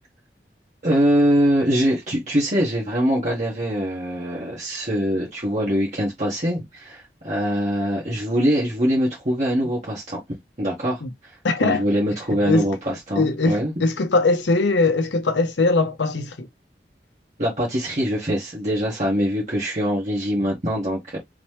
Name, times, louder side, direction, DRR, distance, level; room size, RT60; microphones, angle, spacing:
voice 1, 0.8-11.0 11.6-13.7 17.4-21.2, equal, 40° right, 1.5 m, -23 dB
voice 2, 11.4-11.9 12.4-12.7 13.2-16.5, left 3 dB, 90° left, 0.8 m, -21 dB
3.9 x 3.0 x 3.2 m
head